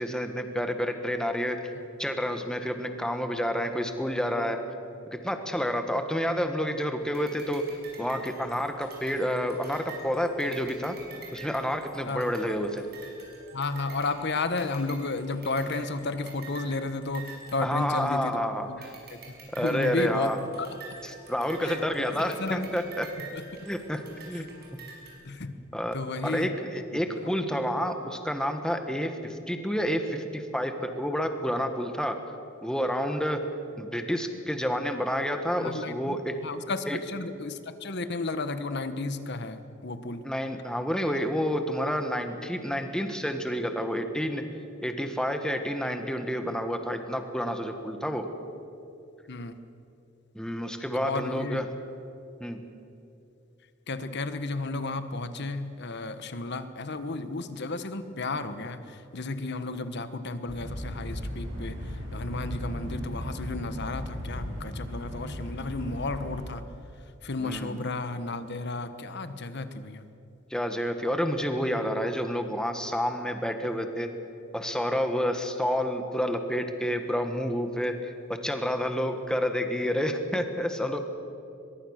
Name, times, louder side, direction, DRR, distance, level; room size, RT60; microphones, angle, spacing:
voice 1, 0.0-1.6 2.0-4.6 5.2-7.6 8.0-11.0 11.3-12.8 17.6-18.9 19.5-20.4 21.0-23.1 23.6-24.5 25.7-25.9 26.2-32.2 32.6-33.4 33.8-36.4 36.9-37.0 40.2-44.4 44.8-48.3 50.3-51.6 52.4-52.6 67.4-67.9 70.5-74.1 74.5-81.0, equal, 5° left, 6 dB, 1.6 m, -29 dB
sound 1, 7.1-18.4 18.8-25.1, right 4 dB, 55° right, 5.8 m, -47 dB
voice 2, 13.5-18.8 19.1-19.2 19.6-20.3 20.6-20.7 21.6-22.8 23.3-23.4 24.3-24.4 25.2-25.5 25.9-26.5 26.9-27.3 35.6-36.2 36.4-40.2 49.3-49.5 50.9-51.6 53.9-66.6 67.2-70.1, left 3 dB, 60° left, 11 dB, 1.2 m, -33 dB
sound 2, 60.5-66.4, equal, 70° right, 7.6 m, -36 dB
22.5 x 22.0 x 6.6 m, 2.7 s
head